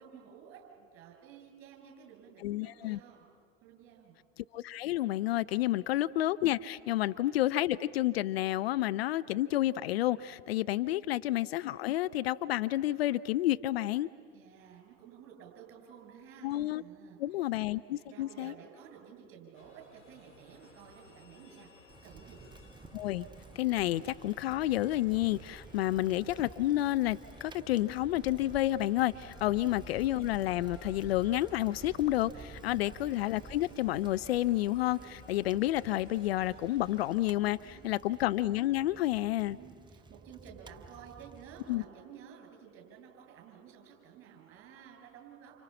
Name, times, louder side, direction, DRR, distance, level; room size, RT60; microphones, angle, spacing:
voice 1, 0.0-3.2 3.6-4.2 5.7-5.8 6.9-7.0 10.9-11.2 14.3-16.5 16.8-17.5 18.0-21.7 22.0-22.4 29.4-29.7 32.6-32.9 37.4-38.0 39.4-45.6, right 8 dB, 35° right, 2 dB, 7.9 m, -53 dB
voice 2, 2.4-3.0 4.5-14.1 16.4-16.8 17.2-18.5 22.9-23.3 23.6-39.6 41.7-41.8, left 15 dB, 55° left, 14 dB, 0.6 m, -30 dB
sound 1, 19.5-37.1, left 3 dB, 80° left, 6.1 m, -58 dB
Bicycle, 21.9-41.8, right 3 dB, 10° right, 1.0 m, -52 dB
30.0 x 29.0 x 5.8 m, 2.1 s
figure-of-eight pair, 85°, 36 cm